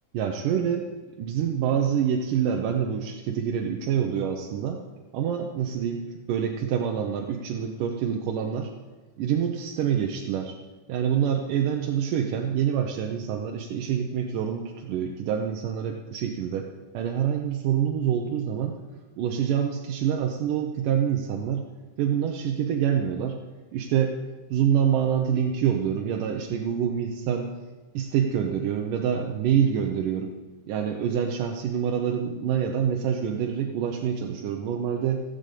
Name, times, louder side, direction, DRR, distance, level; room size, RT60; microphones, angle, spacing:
voice 1, 0.1-0.9 1.2-4.8 5.1-8.7 9.2-10.6 10.9-16.7 16.9-18.8 19.2-21.6 22.0-23.4 23.7-24.2 24.5-27.5 27.9-30.3 30.7-35.2, right 8 dB, 85° right, 2 dB, 2.6 m, -26 dB
16.5 x 6.9 x 8.5 m, 1.2 s
omnidirectional pair, 3.7 m